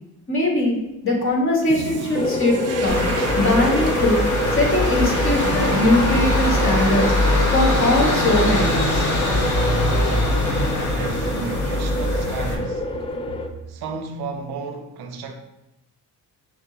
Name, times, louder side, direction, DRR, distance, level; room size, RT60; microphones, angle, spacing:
voice 1, 0.3-0.8 1.0-3.0 3.4-4.2 4.5-7.1 7.5-9.1, left 1 dB, 30° left, 1.5 m, -21 dB
Toilet flush, 1.6-13.9, right 4 dB, 40° right, 0.6 m, -36 dB
sound 1, 2.1-13.5, left 2 dB, 15° left, 0.3 m, -27 dB
sound 2, 2.9-12.5, left 1 dB, 45° left, 1.5 m, -22 dB
voice 2, 10.9-12.9 13.7-15.3, right 5 dB, 70° right, 0.7 m, -33 dB
5.9 x 2.1 x 3.9 m
cardioid pair, 80°, 39 cm